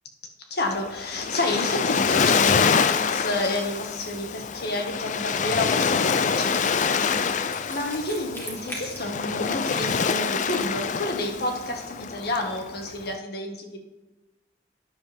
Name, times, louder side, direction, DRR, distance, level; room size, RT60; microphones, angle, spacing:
voice 1, 0.5-13.8, left 2 dB, 60° left, 3 dB, 1.6 m, -30 dB
Waves surf, 0.7-13.1, left 6 dB, 45° left, 0.4 m, -26 dB
Wind instrument woodwind instrument, 5.3-10.7, equal, 15° left, 2.4 m, -43 dB
13.0 x 9.9 x 3.5 m, 1.1 s
head